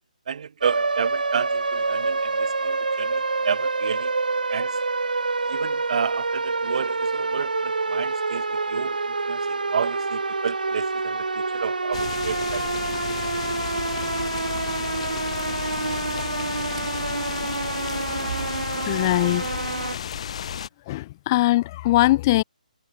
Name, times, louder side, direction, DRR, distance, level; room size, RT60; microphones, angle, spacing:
voice 1, 0.3-4.1 4.5-4.7 5.5-9.0 9.3-12.6 18.2-18.5, right 7 dB, 55° right, 0.9 m, -31 dB
sound 1, 0.6-19.9, right 3 dB, 85° right, 0.5 m, -27 dB
sound 2, 11.9-20.7, left 8 dB, 45° left, 2.1 m, -32 dB
voice 2, 18.9-19.4 20.9-22.4, left 17 dB, 25° left, 0.4 m, -21 dB
figure-of-eight pair, 145°, 4 cm